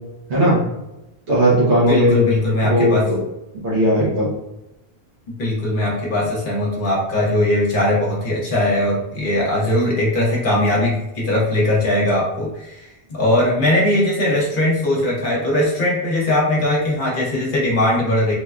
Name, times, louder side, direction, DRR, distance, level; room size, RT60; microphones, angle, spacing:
voice 1, 1.3-2.2 2.6-3.2 3.6-4.3, equal, 80° right, -7 dB, 1.1 m, -17 dB
voice 2, 1.9-3.1 5.4-18.3, left 1 dB, 55° left, -4 dB, 0.9 m, -20 dB
3.3 x 2.2 x 2.3 m, 0.93 s
omnidirectional pair, 1.1 m